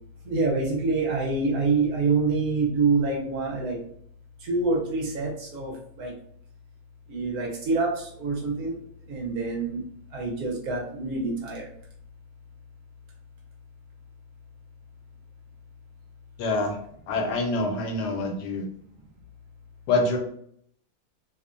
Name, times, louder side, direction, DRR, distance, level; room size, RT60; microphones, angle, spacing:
voice 1, 0.2-3.8 4.4-6.1 7.1-8.8 9.1-9.9 10.1-11.7, right 3 dB, 70° right, -1 dB, 1.1 m, -26 dB
voice 2, 16.4-16.8 17.1-18.6 19.9-20.2, left 2 dB, 80° left, 2 dB, 1.2 m, -25 dB
2.9 x 2.1 x 2.4 m, 0.67 s
omnidirectional pair, 1.8 m